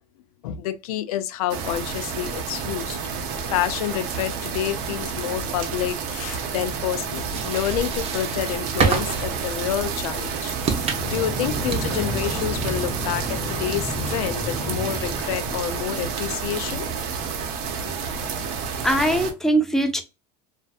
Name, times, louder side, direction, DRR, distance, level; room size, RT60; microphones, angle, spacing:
voice 1, 0.4-3.0 3.5-10.5 11.0-16.9, left 11 dB, 85° left, 0.4 m, -28 dB
sound 1, 1.5-19.3, right 6 dB, 70° right, 0.7 m, -30 dB
sound 2, 7.1-14.4, right 5 dB, 35° right, 0.7 m, -30 dB
sound 3, 10.6-15.8, left 1 dB, 25° left, 1.0 m, -32 dB
voice 2, 18.8-20.0, right 1 dB, ahead, 0.5 m, -21 dB
2.5 x 2.3 x 2.3 m
supercardioid pair, 110°, 19 cm